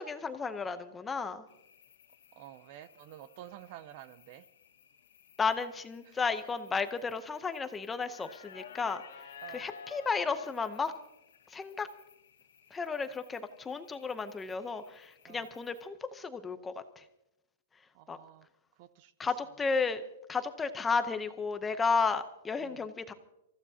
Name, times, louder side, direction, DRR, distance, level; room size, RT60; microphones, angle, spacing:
voice 1, 0.0-1.5 5.4-9.0 9.5-10.9 11.5-11.9 12.7-17.0 18.1-18.2 19.2-20.0 20.3-23.1, left 4 dB, 10° left, 10 dB, 0.7 m, -33 dB
sound 1, 1.5-15.9, left 7 dB, 80° left, 1.9 m, -55 dB
voice 2, 2.3-4.5 6.1-6.2 9.4-9.7 15.3-15.4 17.9-18.5 18.8-19.1 22.6-22.9, right 12 dB, 35° right, 16 dB, 0.5 m, -50 dB
27.0 x 15.0 x 2.8 m, 0.86 s
hypercardioid pair, 170°, 0 cm